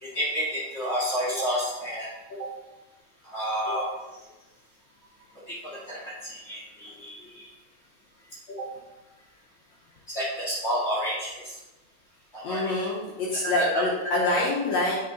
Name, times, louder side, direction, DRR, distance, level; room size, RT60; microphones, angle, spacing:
voice 1, 0.0-2.1 2.4-2.5 3.2-3.9 5.5-7.4 8.6-8.7 10.1-11.4 12.3-12.7 13.4-13.7 14.3-14.4, equal, 40° left, -8 dB, 0.9 m, -30 dB
voice 2, 12.4-15.0, left 2 dB, 75° left, -3 dB, 1.6 m, -26 dB
8.7 x 5.0 x 3.9 m, 1.1 s
omnidirectional pair, 4.4 m